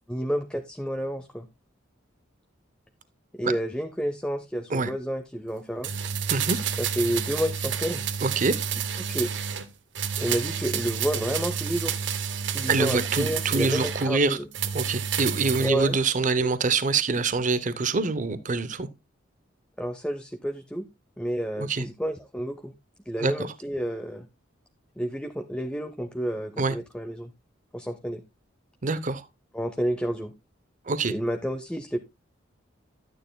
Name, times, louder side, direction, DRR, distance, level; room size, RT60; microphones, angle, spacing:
voice 1, 0.1-1.5 3.3-5.9 6.8-8.0 9.1-9.3 10.2-11.9 12.5-14.5 15.6-16.0 16.4-16.5 19.8-20.9 21.2-22.7 23.1-24.3 25.0-27.3 27.7-28.2 29.5-30.3 31.1-32.0, equal, 5° left, 0.6 m, -30 dB
sound 1, 5.8-9.7 10.0-14.1 14.5-15.8 16.1-16.2, right 7 dB, 70° right, 1.0 m, -30 dB
voice 2, 8.2-8.5 12.7-14.4 14.7-18.9 21.6-21.8 23.2-23.5 26.6-26.8 28.8-29.2 30.9-31.1, right 4 dB, 40° right, 0.7 m, -25 dB
12.0 x 9.1 x 2.3 m
head